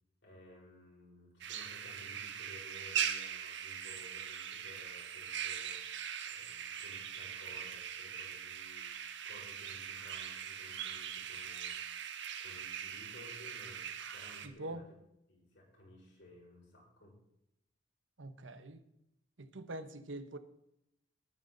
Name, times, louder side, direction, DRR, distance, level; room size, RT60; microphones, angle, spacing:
voice 1, 0.2-8.9 9.2-12.1 12.4-15.0 15.3-17.1, left 1 dB, 65° left, 5.4 m, -57 dB
sound 1, 1.4-14.5, right 8 dB, 65° right, 1.3 m, -41 dB
voice 2, 14.4-14.9 18.2-18.8 19.4-20.4, right 1 dB, 90° right, 1.1 m, -44 dB
19.0 x 9.4 x 4.0 m
head